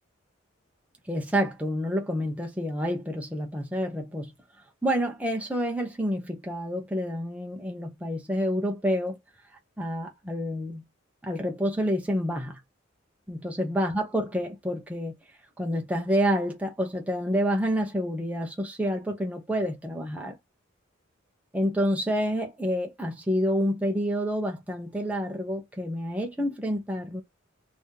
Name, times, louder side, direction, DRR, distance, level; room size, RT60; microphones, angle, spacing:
voice 1, 1.1-4.3 4.8-9.2 9.8-10.8 11.2-12.6 13.3-15.1 15.6-20.4 21.5-27.2, equal, 5° right, 0.8 m, -28 dB
3.5 x 2.8 x 3.6 m
head